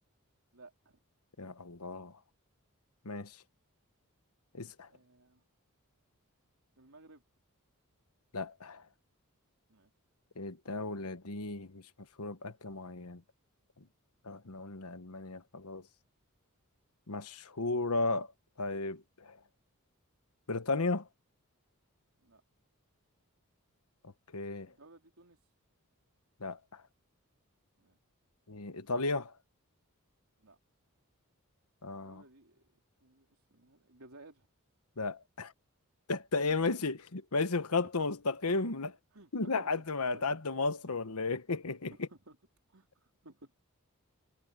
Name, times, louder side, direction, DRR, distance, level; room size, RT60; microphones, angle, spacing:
voice 1, 0.5-1.0 4.9-5.4 6.8-7.2 9.7-9.9 22.2-22.4 24.6-25.4 27.8-28.0 30.4-30.6 32.0-34.5 36.5-36.7 38.5-39.7 40.1-40.3 41.2-41.4 42.1-42.4 42.7-43.5, right 2 dB, 70° right, 3.8 m, -58 dB
voice 2, 1.4-2.1 3.0-3.4 4.5-4.9 8.3-8.8 10.4-11.8 12.2-13.2 14.2-15.8 17.1-18.3 18.6-19.4 20.5-21.1 24.0-24.7 26.4-26.8 28.5-29.3 31.8-32.2 35.0-35.5 36.1-38.9 39.3-42.1, left 3 dB, 85° left, 1.3 m, -34 dB
head